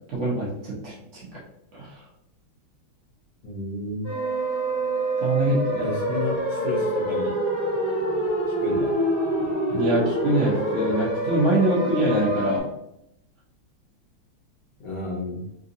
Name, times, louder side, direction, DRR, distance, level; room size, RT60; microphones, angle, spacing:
voice 1, 0.1-1.3 1.7-1.9 5.2-5.9 9.7-12.7, right 1 dB, 65° right, -5 dB, 0.7 m, -24 dB
voice 2, 3.4-4.1 5.8-7.4 8.0-8.1 8.6-9.0 14.8-15.4, left 1 dB, 65° left, -6 dB, 1.6 m, -31 dB
sound 1, 4.0-12.6, right 1 dB, 35° left, 0.6 m, -26 dB
3.7 x 2.7 x 2.5 m, 0.78 s
omnidirectional pair, 2.2 m